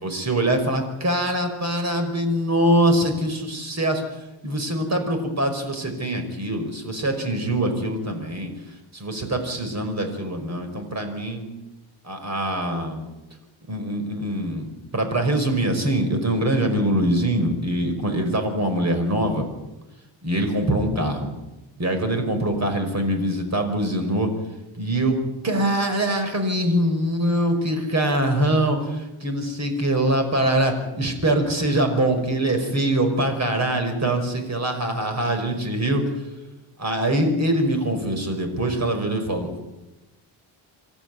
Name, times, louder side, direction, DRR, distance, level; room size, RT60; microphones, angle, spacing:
voice 1, 0.0-8.5 8.9-11.5 12.0-13.0 13.7-19.5 20.2-21.3 21.8-24.3 24.8-25.2 25.4-36.3 36.8-39.6, right 1 dB, 35° right, 6 dB, 5.3 m, -23 dB
26.5 x 13.5 x 9.7 m, 1.0 s
cardioid pair, 120°, 48 cm